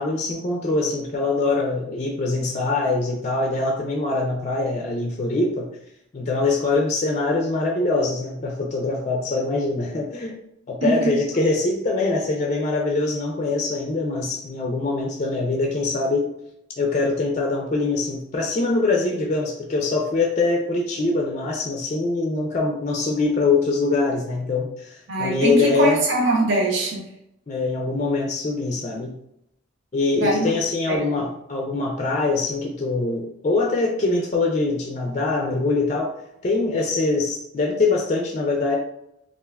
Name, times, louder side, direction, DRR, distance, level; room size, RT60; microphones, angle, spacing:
voice 1, 0.0-5.7 6.1-10.4 10.7-16.3 16.8-26.0 27.5-29.1 29.9-36.1 36.4-38.8, left 3 dB, 35° left, 0 dB, 0.4 m, -23 dB
voice 2, 10.8-11.2 25.1-27.1 30.1-30.5 30.9-31.0, right 2 dB, 65° right, 0 dB, 0.7 m, -22 dB
3.4 x 2.4 x 2.2 m, 0.77 s
head